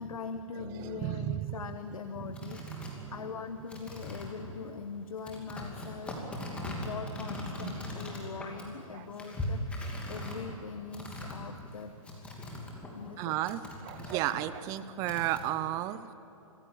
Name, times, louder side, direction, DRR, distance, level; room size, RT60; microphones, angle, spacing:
voice 1, 0.0-11.9 12.9-13.6, left 5 dB, 80° left, 8 dB, 1.2 m, -42 dB
voice 2, 0.6-1.5 2.7-3.1 8.9-9.0 13.2-16.1, right 14 dB, 20° right, 14 dB, 0.5 m, -33 dB
sound 1, 1.6-13.1 13.5-15.6, left 1 dB, 5° left, 2.7 m, -40 dB
25.0 x 16.0 x 8.8 m, 2.8 s
hypercardioid pair, 155°, 18 cm